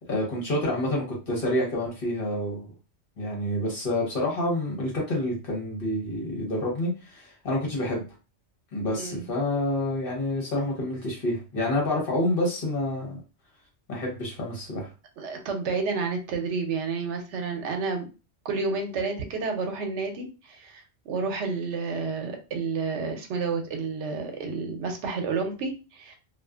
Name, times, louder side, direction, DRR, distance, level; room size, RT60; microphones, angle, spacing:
voice 1, 0.1-2.7 3.2-8.0 8.7-13.1 13.9-14.9, left 1 dB, 55° left, -2 dB, 1.1 m, -28 dB
voice 2, 15.2-18.1 18.4-26.2, right 4 dB, 80° right, 4 dB, 0.9 m, -30 dB
2.4 x 2.4 x 2.3 m, 0.31 s
omnidirectional pair, 1.2 m